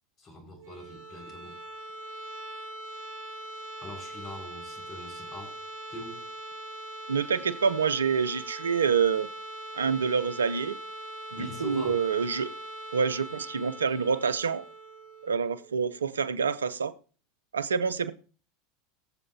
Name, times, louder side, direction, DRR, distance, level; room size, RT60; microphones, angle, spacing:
voice 1, 0.2-1.6 3.8-5.6 5.9-6.3 11.3-12.0, left 1 dB, 35° left, 5.7 m, -43 dB
sound 1, 0.5-16.3, right 1 dB, 65° right, 3.6 m, -42 dB
voice 2, 7.1-9.3 9.8-10.8 11.3-12.5 12.9-14.6 15.2-16.9 17.5-18.1, right 6 dB, 90° right, 0.7 m, -27 dB
22.5 x 7.6 x 2.9 m
hypercardioid pair, 85°, 0 cm